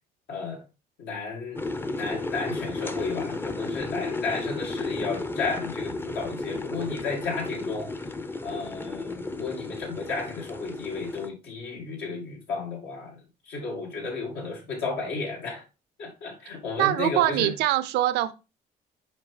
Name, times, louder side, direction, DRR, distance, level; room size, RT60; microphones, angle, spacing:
voice 1, 0.3-0.6 1.0-8.1 8.4-15.7 16.0-17.6, left 4 dB, 80° left, 2.0 m, -33 dB
sound 1, 1.6-11.3, left 3 dB, 15° left, 0.5 m, -33 dB
voice 2, 16.8-18.3, right 14 dB, 85° right, 0.6 m, -23 dB
7.1 x 4.7 x 3.2 m
cardioid pair, 110°, 17 cm